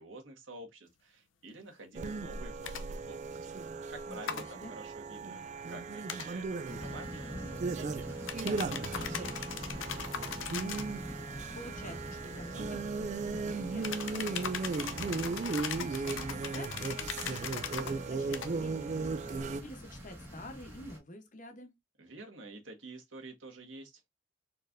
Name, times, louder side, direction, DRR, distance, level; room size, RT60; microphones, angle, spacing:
voice 1, 0.0-3.6 3.9-10.0 22.0-24.1, right 2 dB, 90° right, 1.5 m, -49 dB
sound 1, 1.9-19.6, right 4 dB, 40° right, 0.3 m, -37 dB
sound 2, 2.6-2.8 4.3-4.5 6.1-6.3 8.3-10.9 13.8-17.9 18.3-18.5, left 7 dB, 85° left, 0.6 m, -39 dB
voice 2, 4.1-4.7 10.5-10.9 11.2-15.0 15.3-21.7, left 1 dB, 45° left, 0.9 m, -49 dB
sound 3, 6.6-21.0, equal, 15° right, 1.7 m, -45 dB
4.3 x 3.2 x 2.5 m
head